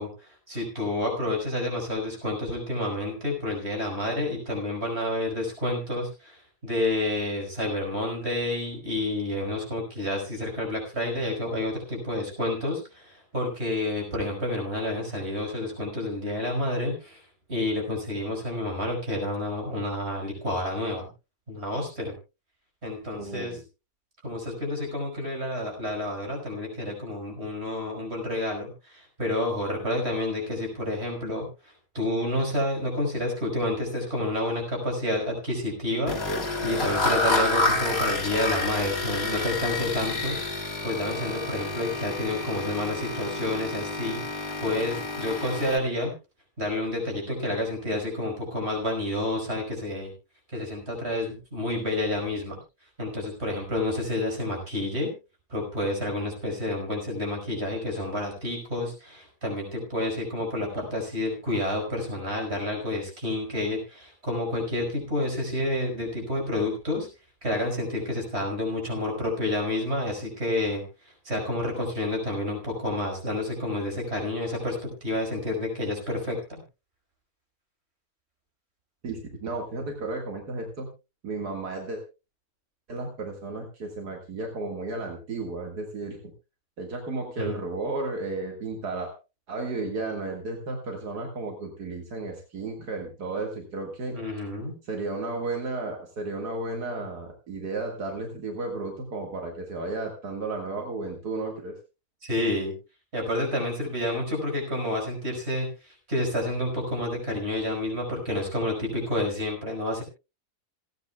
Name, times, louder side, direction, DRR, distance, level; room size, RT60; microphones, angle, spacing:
voice 1, 0.0-17.2 17.5-21.1 21.5-22.1 22.8-23.6 24.2-46.1 46.6-50.1 50.5-52.6 53.0-55.1 55.5-67.1 67.4-76.6 87.4-87.6 94.1-94.7 102.2-102.7 103.1-110.0, left 1 dB, 40° right, 2 dB, 5.5 m, -29 dB
voice 2, 23.2-23.6 79.0-80.9 81.2-82.0 82.9-86.2 86.8-89.1 89.5-94.2 94.8-101.8, right 3 dB, 80° right, 2 dB, 2.4 m, -33 dB
sound 1, 36.1-45.8, left 2 dB, 40° left, 2.4 m, -29 dB
28.0 x 9.6 x 2.3 m, 0.29 s
omnidirectional pair, 1.7 m